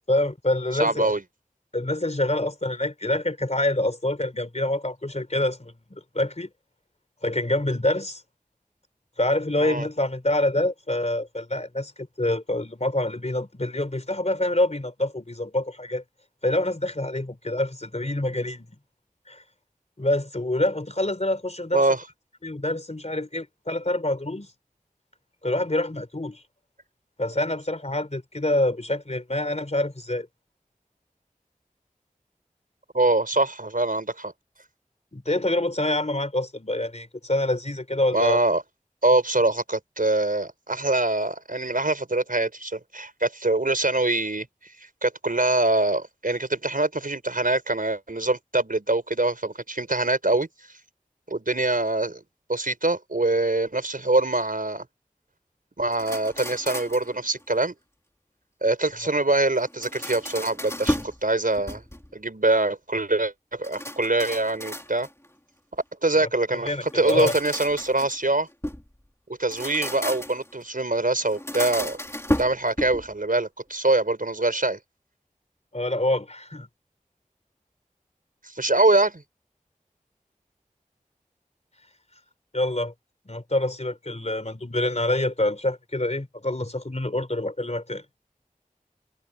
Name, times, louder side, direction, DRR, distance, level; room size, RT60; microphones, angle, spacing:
voice 1, 0.1-1.1 1.7-6.5 7.2-8.2 9.2-16.0 16.4-18.7 19.3-19.4 20.0-21.8 22.4-24.5 25.4-26.4 27.2-30.3 35.1-38.4 66.2-66.3 66.7-67.3 75.7-76.7 82.5-82.9 83.3-88.0, left 1 dB, 55° left, 3.6 m, -26 dB
voice 2, 0.7-1.2 9.6-9.9 21.7-22.0 32.9-34.3 38.1-38.6 39.0-44.5 45.0-50.5 51.3-52.2 52.5-54.9 55.8-57.7 58.6-61.8 62.1-65.1 66.0-68.5 69.4-72.0 72.4-74.8 78.4-79.2, right 2 dB, 85° right, 5.4 m, -24 dB
sound 1, 55.9-57.1 59.6-61.2 61.5-62.2 63.6-65.3 66.8-68.9 69.4-70.5 71.3-73.1, left 1 dB, 20° left, 2.9 m, -32 dB
wide cardioid pair, 40°, 14 cm